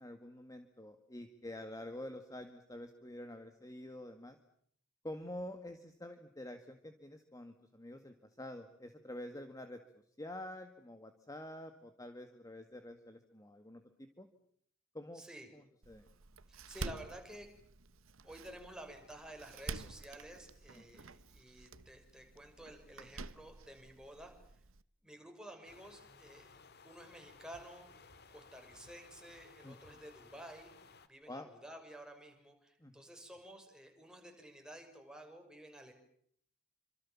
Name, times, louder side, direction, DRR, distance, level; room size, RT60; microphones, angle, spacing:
voice 1, 0.0-4.4 5.0-9.8 10.2-14.3 14.9-15.2 15.5-16.0 20.8-20.9 29.6-29.7 31.3-31.5 32.8-33.1, left 1 dB, 15° left, 7 dB, 2.0 m, -48 dB
voice 2, 15.1-15.5 16.5-17.5 18.2-24.3 25.0-26.5 26.8-27.9 28.3-30.7 31.0-35.9, right 1 dB, 5° right, 3 dB, 6.6 m, -52 dB
Door, 15.8-24.8, right 3 dB, 75° right, 1.2 m, -49 dB
sound 1, 25.6-31.1, left 4 dB, 55° left, 2.3 m, -59 dB
28.5 x 26.5 x 7.3 m, 0.66 s
head